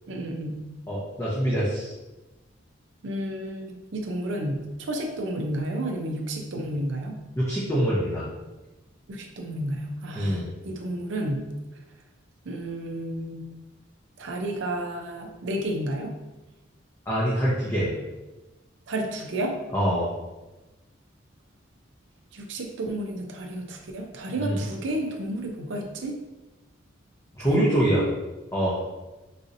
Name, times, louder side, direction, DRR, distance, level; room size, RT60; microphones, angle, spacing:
voice 1, 0.1-0.7 3.0-7.2 9.1-11.5 12.5-13.4 14.2-16.1 18.9-19.5 22.3-26.2 27.5-28.1, right 1 dB, 65° right, 3 dB, 0.5 m, -31 dB
voice 2, 0.9-1.9 7.4-8.2 10.2-10.4 17.1-17.9 19.7-20.1 24.4-24.6 27.4-28.0 28.5-28.7, equal, 15° left, -8 dB, 0.5 m, -24 dB
4.0 x 2.7 x 2.5 m, 1.1 s
head